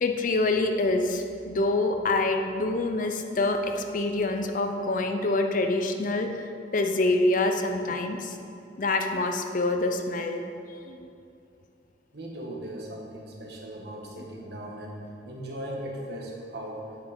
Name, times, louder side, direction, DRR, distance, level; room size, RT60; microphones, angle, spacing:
voice 1, 0.0-6.3 6.7-8.4 8.8-10.4 10.9-11.0, left 2 dB, 45° left, 5 dB, 0.6 m, -26 dB
voice 2, 12.1-16.8, right 1 dB, 60° right, -1 dB, 1.5 m, -38 dB
8.9 x 5.9 x 5.2 m, 2.6 s
head